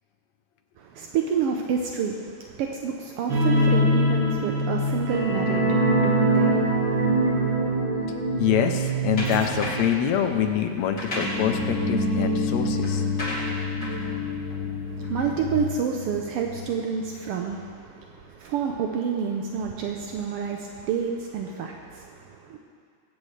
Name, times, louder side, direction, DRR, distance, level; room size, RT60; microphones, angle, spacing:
voice 1, 0.8-7.8 14.9-22.6, right 6 dB, 80° right, 2 dB, 1.3 m, -29 dB
sound 1, 3.3-16.6 16.9-17.0 17.4-17.5, equal, 45° right, 2.2 m, -25 dB
voice 2, 8.4-13.0, left 9 dB, 75° left, 5 dB, 1.8 m, -25 dB
sound 2, 9.2-10.0 10.8-15.5, equal, 30° left, 2.4 m, -34 dB
22.5 x 8.6 x 3.2 m, 2.2 s
omnidirectional pair, 3.4 m